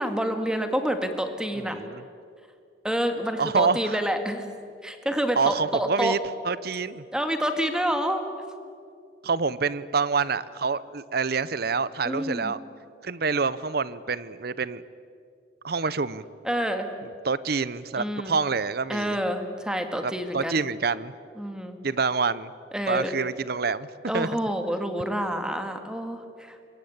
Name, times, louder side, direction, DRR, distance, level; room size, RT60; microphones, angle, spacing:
voice 1, 0.0-1.8 2.8-4.5 4.8-6.2 7.1-8.2 8.5-8.6 12.0-12.5 16.4-16.9 18.0-18.4 18.9-20.5 21.4-21.8 22.7-23.1 24.1-26.6, equal, 5° right, 7 dB, 1.9 m, -28 dB
voice 2, 1.6-2.0 3.4-4.0 5.4-6.2 6.4-7.0 9.2-12.6 13.0-14.8 15.6-16.2 17.2-19.2 20.0-21.1 21.8-22.5 22.9-23.9 24.1-24.3, right 4 dB, 55° right, 18 dB, 0.7 m, -27 dB
25.5 x 22.0 x 8.7 m, 2.3 s
head